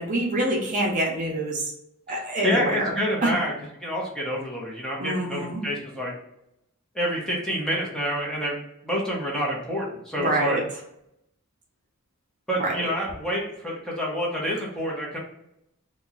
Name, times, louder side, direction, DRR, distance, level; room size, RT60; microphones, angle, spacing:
voice 1, 0.0-1.7 2.1-2.9 3.2-3.3 5.0-5.6 10.2-10.6 12.6-12.7, right 1 dB, 35° right, -2 dB, 0.7 m, -26 dB
voice 2, 2.4-3.5 3.8-6.1 6.9-8.6 8.8-10.6 12.5-15.2, equal, 5° left, -4 dB, 0.8 m, -28 dB
2.9 x 2.3 x 3.7 m, 0.79 s
head